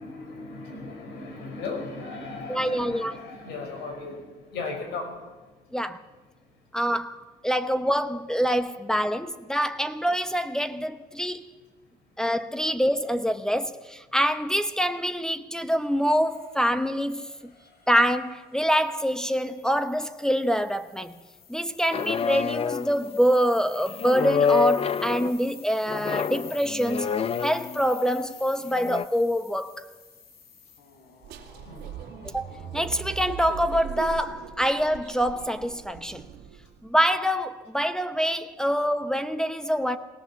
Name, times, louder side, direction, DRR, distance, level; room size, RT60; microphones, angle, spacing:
voice 1, 0.0-5.9 6.4-6.6 12.0-12.1 17.6-17.7 31.6-31.9, left 3 dB, 85° left, 5.5 m, -37 dB
voice 2, 2.5-3.1 5.7-6.0 6.7-11.5 12.2-17.5 17.9-21.1 21.5-27.1 27.4-29.9 32.2-32.5 32.7-36.3 36.8-40.0, equal, 5° left, 0.8 m, -25 dB
sound 1, 15.8-33.4, left 6 dB, 70° left, 3.9 m, -50 dB
sound 2, 21.9-23.1 24.0-25.4 25.9-27.9 28.7-29.0, left 6 dB, 35° left, 0.6 m, -27 dB
sound 3, 31.2-36.8, right 10 dB, 80° right, 2.3 m, -39 dB
20.5 x 17.5 x 7.2 m
cardioid pair, 110°, 17 cm